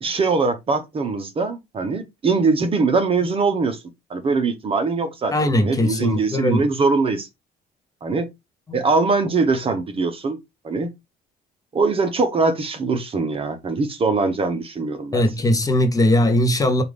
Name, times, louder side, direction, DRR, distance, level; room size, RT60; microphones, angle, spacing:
voice 1, 0.0-3.8 4.1-5.3 5.6-7.3 8.0-8.3 8.7-10.4 10.6-10.9 11.7-15.2, right 4 dB, 35° right, 0.8 m, -22 dB
voice 2, 5.3-6.7 15.1-16.8, left 1 dB, 20° left, 0.8 m, -19 dB
4.8 x 2.5 x 3.3 m
cardioid pair, 110°, 17 cm